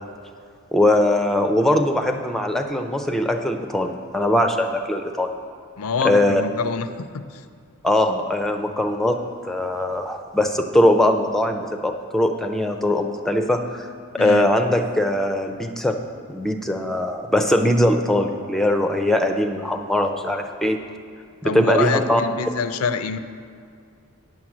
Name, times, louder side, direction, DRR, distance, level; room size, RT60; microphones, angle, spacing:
voice 1, 0.7-5.3 6.0-6.4 7.8-9.2 9.4-13.9 14.1-16.0 16.3-20.8 21.4-22.2, left 1 dB, ahead, 5 dB, 0.4 m, -21 dB
voice 2, 5.8-7.4 14.2-14.5 21.4-23.2, left 5 dB, 75° left, 11 dB, 0.5 m, -26 dB
9.4 x 6.3 x 7.2 m, 2.3 s
head